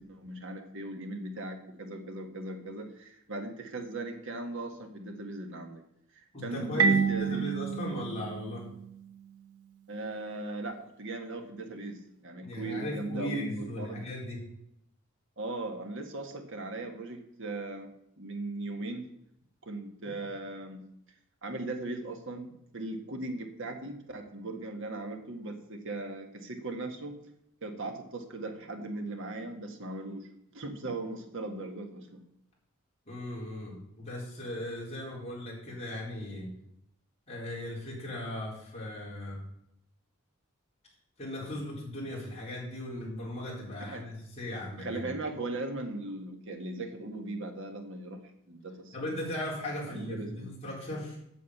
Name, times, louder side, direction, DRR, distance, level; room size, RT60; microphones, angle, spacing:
voice 1, 0.0-5.8 6.1-7.5 9.9-14.1 15.4-17.9 18.2-19.1 19.6-20.8 21.4-27.1 27.6-30.3 30.5-32.2 43.8-44.0 44.8-48.2 48.5-49.0 49.9-50.5, right 2 dB, 60° right, 5 dB, 1.7 m, -38 dB
voice 2, 6.3-8.7 12.4-14.5 33.1-36.5 37.3-39.4 41.2-45.1 48.9-51.2, left 1 dB, 30° left, -5 dB, 4.4 m, -37 dB
Marimba xylophone, 6.8-9.4, right 6 dB, 75° right, 0.9 m, -29 dB
8.5 x 6.8 x 8.3 m, 0.77 s
head